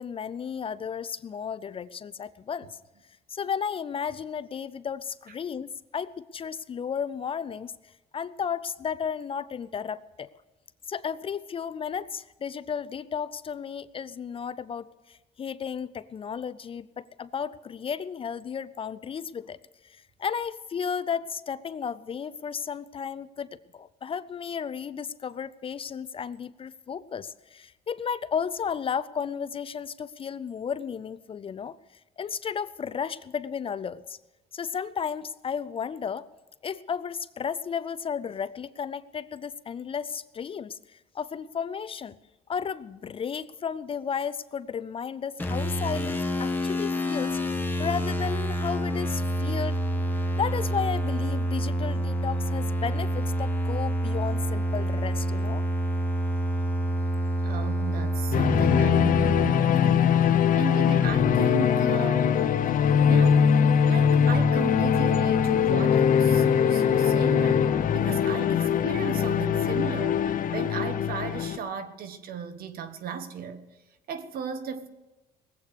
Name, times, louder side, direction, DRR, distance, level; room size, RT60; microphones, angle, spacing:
voice 1, 0.0-2.8 3.3-7.7 8.1-10.3 10.9-19.6 19.8-23.5 23.7-31.8 32.2-34.2 34.5-36.2 36.6-40.8 41.1-42.2 42.5-49.8 50.3-55.6, left 7 dB, 35° left, 0.4 m, -33 dB
sound 1, 45.4-59.5, right 1 dB, 10° left, 1.4 m, -27 dB
voice 2, 57.4-62.4 63.1-73.6 74.1-74.9, right 7 dB, 60° right, 1.3 m, -36 dB
sound 2, 58.3-71.6, left 8 dB, 55° left, 0.9 m, -22 dB
19.5 x 8.3 x 6.6 m
cardioid pair, 110°, 17 cm